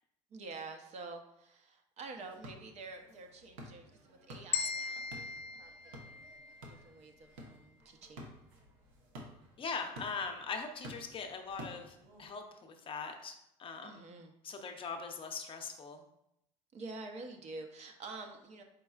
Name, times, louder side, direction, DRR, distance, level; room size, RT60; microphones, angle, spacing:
voice 1, 0.3-5.7 6.7-8.3 13.8-14.3 16.7-18.6, right 3 dB, 45° right, 5 dB, 0.7 m, -48 dB
sound 1, 2.2-12.3, equal, 85° right, 1.0 m, -53 dB
sound 2, 4.5-6.7, left 6 dB, 80° left, 0.5 m, -39 dB
voice 2, 9.6-13.3 13.6-13.9 14.4-16.0, left 5 dB, 35° left, 5 dB, 0.6 m, -41 dB
4.5 x 4.1 x 2.4 m, 0.81 s
supercardioid pair, 100°, 15 cm